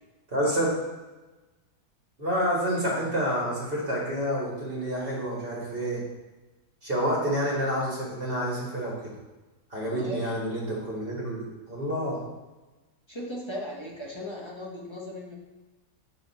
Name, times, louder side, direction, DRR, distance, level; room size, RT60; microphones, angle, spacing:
voice 1, 0.3-0.7 2.2-6.0 6.8-9.1 9.7-12.2, equal, 35° right, -4 dB, 1.9 m, -28 dB
voice 2, 9.8-10.3 13.1-15.4, equal, 20° left, -4 dB, 1.1 m, -37 dB
6.2 x 5.7 x 4.2 m, 1.2 s
omnidirectional pair, 1.7 m